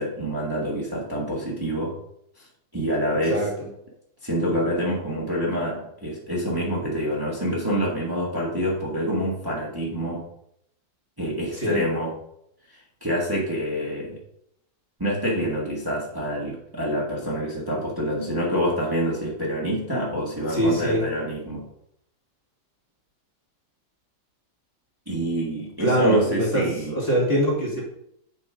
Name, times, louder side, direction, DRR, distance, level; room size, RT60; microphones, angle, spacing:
voice 1, 0.0-1.9 2.4-2.5 2.7-3.5 4.2-10.2 11.2-12.1 12.7-14.2 15.0-21.7 25.0-27.0, equal, 10° right, -5 dB, 1.7 m, -27 dB
voice 2, 3.3-3.7 11.6-11.8 20.5-21.0 25.8-27.8, right 1 dB, 35° left, -3 dB, 2.4 m, -23 dB
8.0 x 5.4 x 5.0 m, 0.74 s
omnidirectional pair, 1.9 m